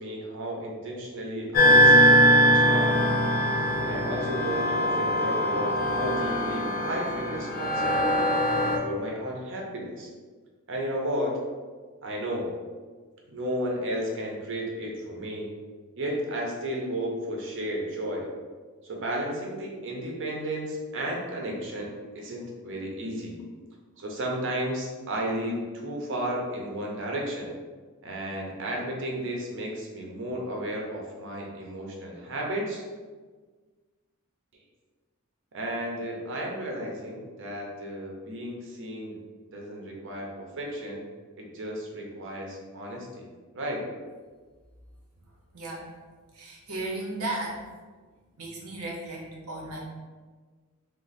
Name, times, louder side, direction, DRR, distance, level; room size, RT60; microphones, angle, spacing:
voice 1, 0.0-3.0 3.8-8.3 8.8-10.1 10.7-11.4 12.0-12.5 13.3-15.5 16.0-18.3 18.8-23.4 24.0-27.5 28.0-32.8 35.5-39.1 39.5-41.0 41.4-43.3 43.5-43.9, right 1 dB, 60° right, -1 dB, 0.7 m, -33 dB
sound 1, 1.5-8.8, equal, 45° left, 0.4 m, -21 dB
voice 2, 45.2-45.9 46.3-47.6 48.1-49.8, right 2 dB, 90° right, -2 dB, 0.8 m, -36 dB
3.2 x 2.2 x 4.0 m, 1.4 s
head